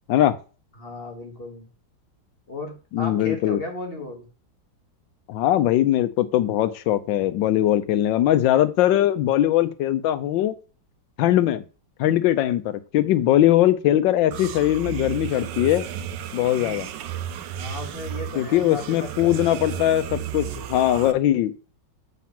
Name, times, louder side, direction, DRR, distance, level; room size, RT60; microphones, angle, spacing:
voice 1, 0.8-1.7 2.5-4.3 17.6-19.8, left 2 dB, 35° left, 2 dB, 1.5 m, -35 dB
voice 2, 2.9-3.6 5.3-10.6 11.2-11.6 12.0-15.9 16.3-16.9 18.4-21.5, left 13 dB, 85° left, 11 dB, 1.4 m, -21 dB
sound 1, 14.3-21.1, right 10 dB, 75° right, 1.3 m, -33 dB
7.5 x 4.2 x 5.7 m, 0.35 s
omnidirectional pair, 2.0 m